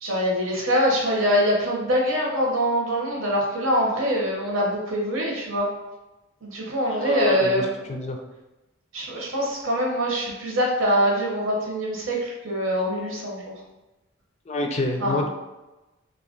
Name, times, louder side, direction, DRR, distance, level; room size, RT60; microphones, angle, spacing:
voice 1, 0.0-5.7 6.4-7.7 8.9-13.5 15.0-15.3, equal, 90° right, -2 dB, 1.0 m, -24 dB
voice 2, 6.9-8.2 14.5-15.3, left 2 dB, 35° left, 4 dB, 0.3 m, -27 dB
2.8 x 2.5 x 3.8 m, 1.0 s
head